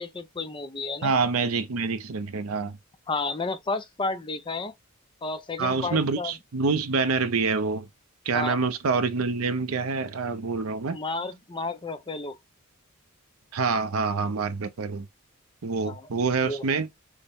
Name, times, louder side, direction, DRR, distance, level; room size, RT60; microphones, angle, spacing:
voice 1, 0.0-1.1 3.1-4.7 5.2-6.3 8.3-8.7 10.9-12.4 15.8-16.0 16.4-16.6, left 3 dB, 25° left, 0.6 m, -32 dB
voice 2, 1.0-2.8 5.6-7.9 8.3-11.0 13.5-15.1 15.6-16.9, right 4 dB, 85° right, 0.6 m, -26 dB
6.4 x 2.2 x 3.5 m
head